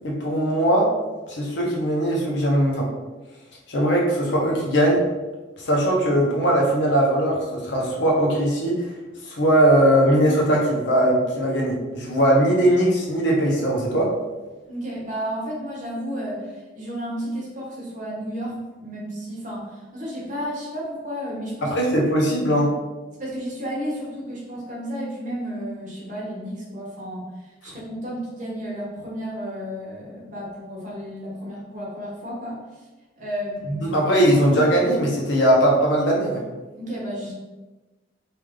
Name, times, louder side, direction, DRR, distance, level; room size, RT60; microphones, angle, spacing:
voice 1, 0.0-0.9 1.3-2.9 3.7-5.0 5.6-8.9 9.3-14.1 21.6-22.7 33.7-36.4, right 1 dB, 70° left, -2 dB, 0.9 m, -20 dB
voice 2, 14.7-21.7 23.2-27.3 27.6-32.6 33.2-34.3 36.8-37.3, equal, 45° right, -5 dB, 1.1 m, -32 dB
3.3 x 2.6 x 3.6 m, 1.2 s
head